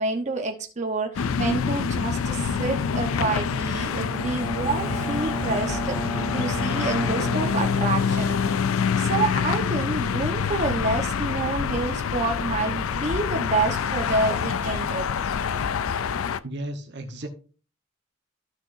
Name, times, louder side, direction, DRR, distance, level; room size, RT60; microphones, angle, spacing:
voice 1, 0.0-6.0 6.3-8.4 9.0-15.1, right 3 dB, 35° right, 3 dB, 1.1 m, -28 dB
sound 1, 1.2-16.4, left 6 dB, 85° left, 0.4 m, -26 dB
Bowed string instrument, 4.1-8.3, right 2 dB, 20° left, 2.2 m, -33 dB
voice 2, 16.4-17.3, right 1 dB, 60° right, 5 dB, 1.1 m, -34 dB
13.0 x 6.2 x 2.7 m, 0.36 s
head